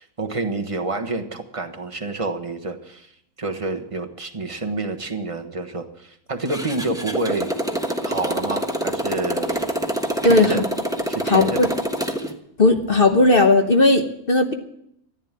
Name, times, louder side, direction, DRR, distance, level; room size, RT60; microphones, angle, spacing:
voice 1, 0.0-3.1 3.4-7.5 8.0-9.7 10.2-10.7 11.1-11.6, right 3 dB, 20° right, 4 dB, 1.3 m, -28 dB
Motorcycle, 6.5-12.3, equal, 5° right, 1.1 m, -26 dB
voice 2, 11.3-11.7 12.6-14.5, left 2 dB, 40° left, 5 dB, 1.2 m, -16 dB
14.5 x 10.5 x 7.5 m, 0.74 s
omnidirectional pair, 1.6 m